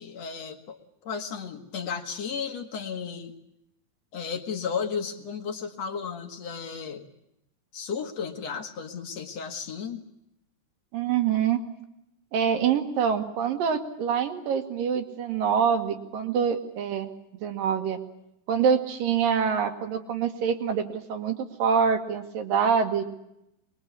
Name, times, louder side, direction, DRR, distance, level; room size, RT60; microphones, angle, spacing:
voice 1, 0.0-3.3 4.1-7.1 7.7-10.0, left 6 dB, 50° left, 4 dB, 2.3 m, -34 dB
voice 2, 10.9-11.6 12.3-17.1 17.4-18.0 18.5-23.0, right 7 dB, 60° right, 6 dB, 3.4 m, -25 dB
25.5 x 22.5 x 8.4 m, 0.82 s
omnidirectional pair, 4.8 m